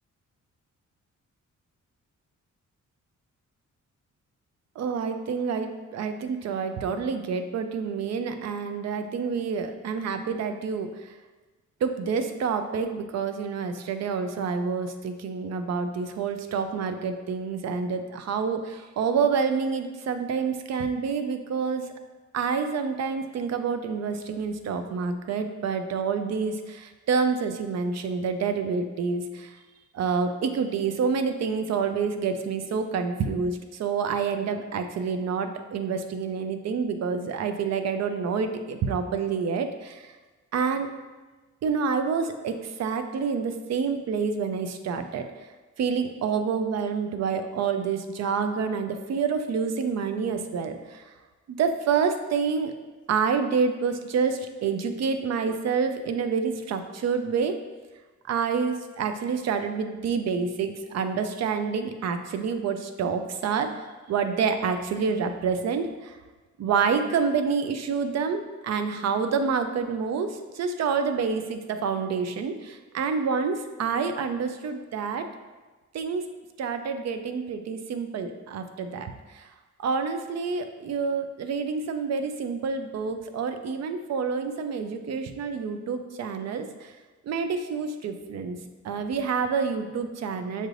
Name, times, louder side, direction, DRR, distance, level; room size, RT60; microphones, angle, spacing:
voice 1, 4.8-10.9 11.8-21.9 22.3-29.5 29.9-40.1 40.5-40.9 41.6-45.3 45.8-51.0 51.5-52.7 53.1-57.6 58.3-63.7 64.1-66.1 66.6-75.3 75.9-76.2 76.6-79.4 79.8-86.9 87.3-88.6 88.8-90.7, right 5 dB, 60° right, 8 dB, 0.4 m, -28 dB
6.5 x 2.5 x 3.2 m, 1.3 s
cardioid pair, 120°, 30 cm